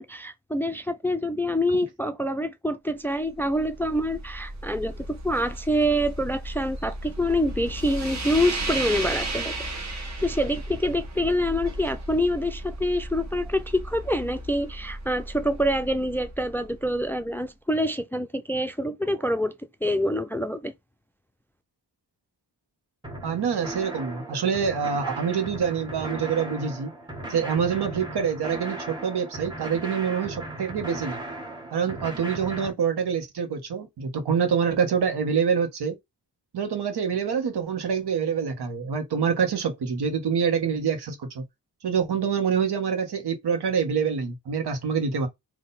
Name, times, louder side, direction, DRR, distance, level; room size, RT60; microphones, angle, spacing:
voice 1, 0.0-9.5 9.8-19.5 19.8-20.7, equal, 5° left, 0.4 m, -26 dB
sound 1, 3.1-17.3, right 1 dB, 45° right, 1.3 m, -35 dB
sound 2, 23.0-32.7, right 1 dB, 10° right, 1.6 m, -37 dB
voice 2, 23.2-26.9 27.3-31.2 31.7-35.9 36.5-41.4 41.8-45.3, right 6 dB, 75° right, 1.4 m, -26 dB
3.7 x 2.8 x 4.1 m
wide cardioid pair, 120°, 39 cm